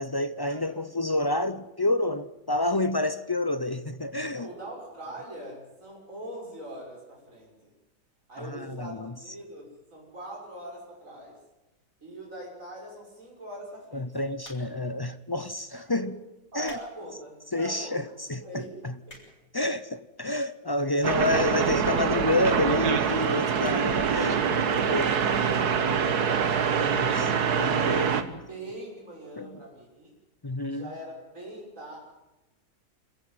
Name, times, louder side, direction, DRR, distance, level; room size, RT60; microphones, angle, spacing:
voice 1, 0.0-4.5 8.4-9.2 13.9-16.2 16.5-16.8 17.5-18.9 19.5-24.4 24.8-25.1 26.8-28.4 29.4-29.6 30.4-30.9, left 2 dB, 35° left, 0.3 m, -29 dB
voice 2, 4.3-7.7 8.3-11.4 12.0-14.1 15.7-16.2 16.5-18.0 18.4-18.7 19.1-19.2 23.7-26.5 27.5-30.1 30.7-32.0, right 1 dB, 50° right, 6.6 m, -42 dB
sound 1, 14.4-14.9 15.7-15.9 16.4-16.9 17.3-17.4 18.1-18.2 18.4-18.5 18.7-19.5 20.3-20.4 21.2-21.5 21.8-21.9 22.1-22.2 22.4-22.5 22.9-23.1 23.6-23.9 24.3-24.4 24.5-24.6, left 2 dB, 55° left, 7.8 m, -51 dB
sound 2, 21.0-28.2, right 6 dB, 70° right, 1.9 m, -25 dB
26.0 x 14.5 x 9.6 m
omnidirectional pair, 1.7 m